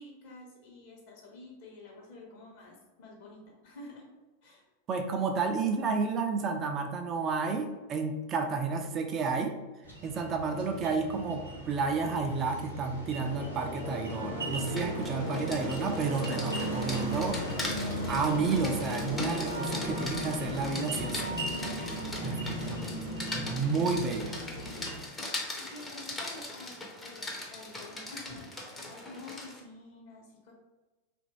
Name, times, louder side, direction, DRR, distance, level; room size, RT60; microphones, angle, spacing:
voice 1, 0.0-4.1 4.4-4.7 16.6-17.1 23.9-24.0 24.4-24.9 25.3-26.8 27.0-30.5, left 2 dB, 50° left, -2 dB, 1.0 m, -49 dB
voice 2, 4.9-9.6 10.0-21.4 22.2-23.0 23.3-24.4, right 4 dB, 30° right, 4 dB, 0.3 m, -31 dB
sound 1, 9.8-25.0, equal, 90° left, 0.8 m, -37 dB
sound 2, 13.2-22.7, right 1 dB, 85° right, 0.6 m, -42 dB
Rain, 14.5-29.6, left 2 dB, 15° left, 0.6 m, -41 dB
2.9 x 2.5 x 2.9 m, 1.2 s
figure-of-eight pair, 90°, 0 cm